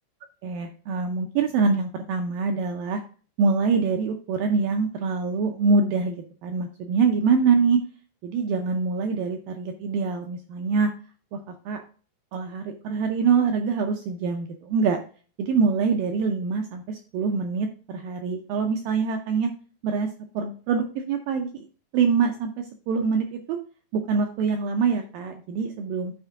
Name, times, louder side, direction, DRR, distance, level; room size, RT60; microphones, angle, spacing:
voice 1, 0.4-3.0 3.4-7.8 8.2-10.9 11.3-11.8 12.3-15.0 15.4-19.5 19.8-20.1 20.3-21.6 21.9-23.6 24.1-26.1, right 5 dB, 85° right, 5 dB, 2.0 m, -24 dB
11.5 x 4.4 x 3.5 m, 0.39 s
omnidirectional pair, 4.8 m